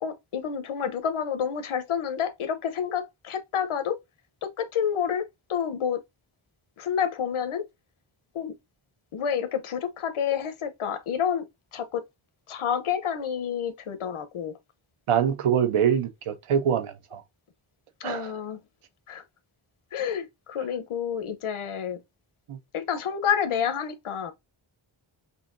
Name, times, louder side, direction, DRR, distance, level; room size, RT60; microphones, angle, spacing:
voice 1, 0.0-4.0 4.4-6.0 6.8-7.7 8.3-8.5 9.1-11.5 11.7-12.0 12.5-14.6 18.0-18.6 19.1-19.2 19.9-22.0 22.7-24.3, left 8 dB, 75° left, 0.9 m, -29 dB
voice 2, 15.1-17.2 18.0-18.3 22.5-22.6, right 8 dB, 90° right, 0.8 m, -24 dB
5.5 x 2.8 x 2.5 m
wide cardioid pair, 140°, 50 cm